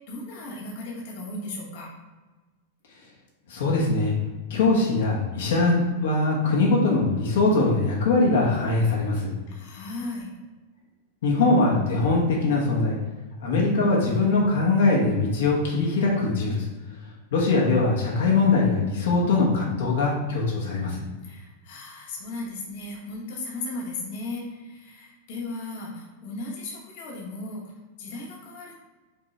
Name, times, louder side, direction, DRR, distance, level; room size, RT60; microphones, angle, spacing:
voice 1, 0.1-1.9 9.5-10.3 21.2-27.7 28.0-28.8, left 2 dB, 50° left, -2 dB, 1.1 m, -36 dB
voice 2, 3.5-4.1 4.5-9.3 11.2-13.0 13.4-16.7 17.3-21.0, left 3 dB, 75° left, -2 dB, 1.1 m, -22 dB
5.0 x 3.0 x 3.2 m, 1.2 s
supercardioid pair, 160°, 0 cm